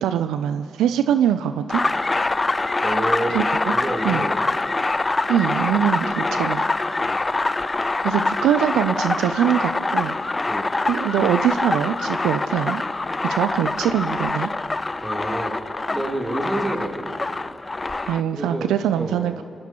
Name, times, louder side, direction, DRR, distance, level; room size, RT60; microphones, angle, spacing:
voice 1, 0.0-1.8 3.3-3.7 4.0-4.2 5.3-6.6 8.0-10.1 10.9-12.8 13.2-14.5 18.1-19.4, right 10 dB, 85° right, 10 dB, 0.3 m, -22 dB
sound 1, 1.7-18.2, left 2 dB, 30° left, 0.5 m, -24 dB
voice 2, 2.8-3.4 3.7-4.5 7.0-7.2 10.5-10.7 15.0-15.6 15.9-17.1 18.3-18.7 18.9-19.3, right 1 dB, 25° right, -1 dB, 3.2 m, -28 dB
25.0 x 17.0 x 3.0 m, 2.6 s
supercardioid pair, 40°, 0 cm